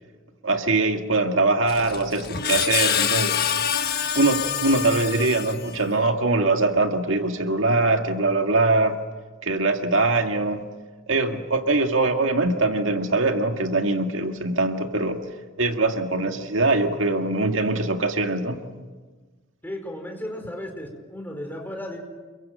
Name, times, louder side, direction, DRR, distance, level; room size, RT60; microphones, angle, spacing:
voice 1, 0.4-3.6 4.1-9.0 9.4-10.6 11.1-15.2 15.6-18.7, right 2 dB, 75° right, 5 dB, 1.9 m, -22 dB
Screech, 1.7-6.0, left 9 dB, 55° left, 1.4 m, -26 dB
voice 2, 19.6-22.0, left 1 dB, 10° left, 3 dB, 4.7 m, -34 dB
28.5 x 23.0 x 7.6 m, 1.3 s
head